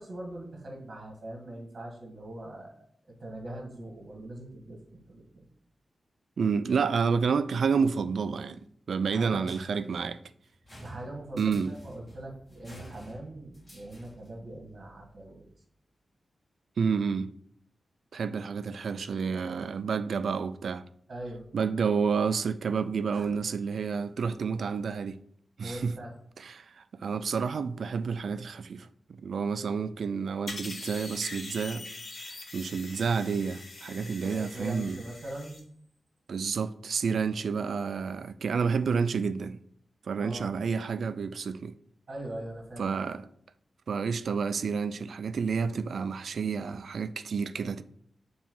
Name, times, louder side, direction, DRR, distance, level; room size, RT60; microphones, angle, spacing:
voice 1, 0.0-2.8 3.2-5.5 9.1-9.4 10.8-15.5 21.1-21.4 23.1-23.3 25.6-26.1 33.9-35.6 40.2-40.5 42.1-42.9, right 1 dB, 40° right, 1.9 m, -41 dB
voice 2, 6.4-10.2 11.4-11.7 16.8-17.3 18.1-20.8 21.5-25.2 25.6-25.9 26.4-28.9 29.2-31.9 32.5-35.0 36.3-39.6 40.1-41.7 42.8-43.3 43.9-47.8, right 5 dB, 75° right, 0.4 m, -29 dB
sound 1, 9.4-14.4, equal, 20° left, 2.0 m, -50 dB
sound 2, 30.5-35.6, left 2 dB, 55° left, 1.3 m, -43 dB
7.1 x 3.1 x 5.3 m
wide cardioid pair, 150°, 0 cm